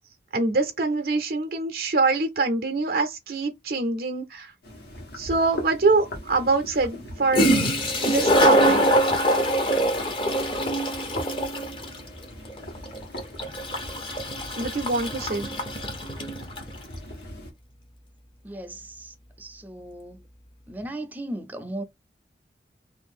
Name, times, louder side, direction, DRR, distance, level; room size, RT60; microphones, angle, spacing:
voice 1, 0.3-4.5 5.2-7.5 8.0-8.8 14.6-15.5, right 3 dB, 55° right, 0.5 m, -24 dB
sound 1, 4.6-17.5, left 1 dB, 70° left, 1.3 m, -41 dB
Toilet flush, 5.3-5.4 7.0-7.1 7.3-16.7, equal, 30° left, 0.7 m, -24 dB
voice 2, 18.4-20.2 20.7-21.8, right 1 dB, 10° right, 0.4 m, -37 dB
2.6 x 2.4 x 3.5 m
head